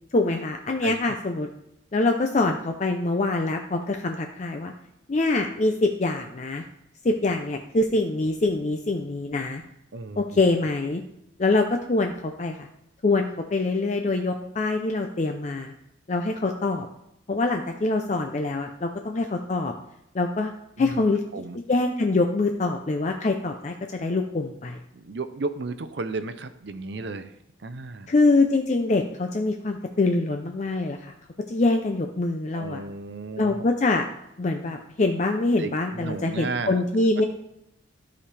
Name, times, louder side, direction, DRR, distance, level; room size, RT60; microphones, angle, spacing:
voice 1, 0.1-1.5 1.9-4.7 5.1-6.6 7.0-9.6 10.2-11.0 11.4-12.7 13.0-15.7 16.1-16.9 17.3-19.7 20.1-20.5 20.8-21.2 21.5-24.8 28.1-31.1 31.5-32.8 33.4-34.1 34.4-37.2, left 2 dB, 40° left, 4 dB, 0.5 m, -24 dB
voice 2, 9.9-10.4 20.8-21.0 21.3-21.6 24.9-28.1 32.5-33.7 35.6-36.8, right 3 dB, 60° right, 11 dB, 0.6 m, -34 dB
12.5 x 5.1 x 3.3 m, 0.82 s
head